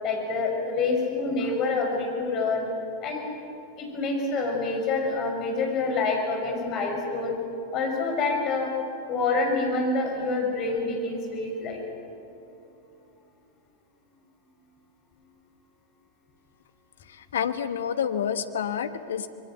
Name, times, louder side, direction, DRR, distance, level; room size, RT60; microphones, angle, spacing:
voice 1, 0.0-2.6 3.0-3.3 3.8-7.3 7.7-8.7 9.1-11.8, left 3 dB, 35° left, 1 dB, 6.5 m, -27 dB
voice 2, 17.1-19.3, left 8 dB, 65° left, 10 dB, 1.3 m, -29 dB
25.0 x 22.0 x 8.0 m, 2.7 s
figure-of-eight pair, 90°, 0 cm